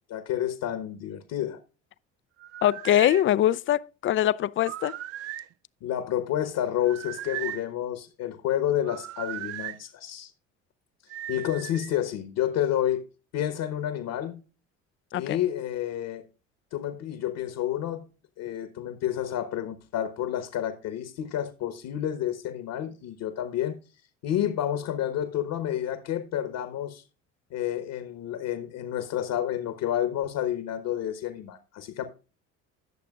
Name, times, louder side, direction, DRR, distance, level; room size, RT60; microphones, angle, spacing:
voice 1, 0.1-1.6 5.8-10.3 11.3-13.0 13.3-14.4 15.1-16.2 16.7-18.0 18.4-23.8 24.2-27.0 27.5-32.0, left 11 dB, 60° left, 1.2 m, -30 dB
sound 1, 2.4-3.3 4.6-5.5 6.8-7.7 8.8-9.8 11.1-12.0, right 14 dB, 40° right, 0.4 m, -37 dB
voice 2, 2.6-4.9 15.1-15.4, left 12 dB, 35° left, 0.4 m, -23 dB
17.5 x 6.7 x 2.4 m
hypercardioid pair, 65°, 37 cm